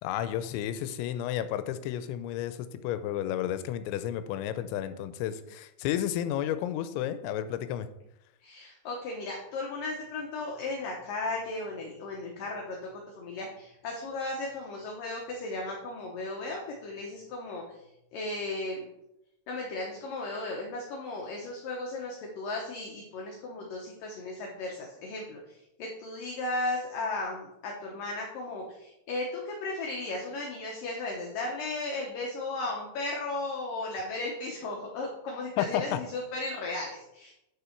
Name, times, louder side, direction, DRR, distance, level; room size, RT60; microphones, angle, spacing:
voice 1, 0.0-7.9 35.6-35.7 35.9-36.0, left 11 dB, 85° left, 11 dB, 2.9 m, -32 dB
voice 2, 8.4-12.8 13.2-17.8 18.1-18.9 19.5-37.3, left 2 dB, 70° left, -1 dB, 2.1 m, -35 dB
9.3 x 6.8 x 4.5 m, 0.86 s
omnidirectional pair, 5.3 m